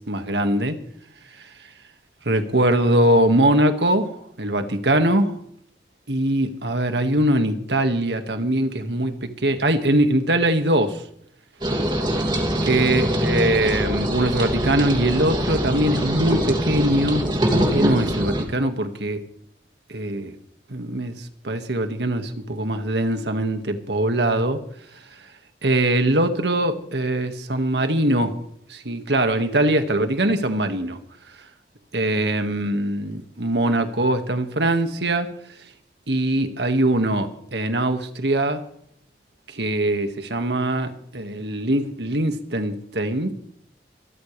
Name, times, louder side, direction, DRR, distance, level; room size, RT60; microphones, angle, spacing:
voice 1, 0.1-0.8 2.3-5.4 6.1-9.1 9.4-11.0 12.6-17.3 17.5-19.2 19.9-20.3 20.7-21.1 21.4-24.6 25.6-28.3 28.7-31.0 31.9-35.3 36.1-38.6 39.5-43.3, right 1 dB, 85° right, 7 dB, 1.9 m, -22 dB
sound 1, 11.6-18.4, right 1 dB, 25° right, 2.6 m, -23 dB
25.5 x 14.0 x 3.4 m, 0.64 s
head